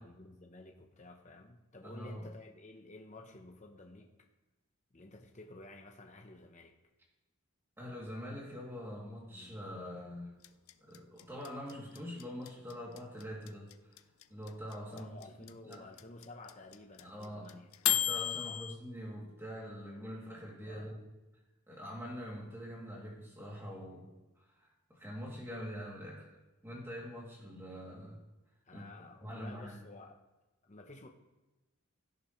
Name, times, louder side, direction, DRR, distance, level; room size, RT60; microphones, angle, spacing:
voice 1, 0.0-4.1 4.9-6.7 9.3-9.5 14.9-18.1 18.5-18.6 20.6-21.0 28.6-30.2 30.6-31.1, left 2 dB, 30° left, 2 dB, 0.9 m, -52 dB
voice 2, 1.8-2.3 7.8-10.4 10.8-13.9 14.3-15.1 15.4-15.9 17.0-17.5 17.9-21.1 21.7-24.1 24.4-26.3 26.6-28.2 28.7-29.8, equal, 10° right, -4 dB, 2.7 m, -44 dB
sound 1, 10.4-18.7, left 13 dB, 70° left, 0.5 m, -33 dB
16.5 x 10.5 x 3.2 m, 1.1 s
head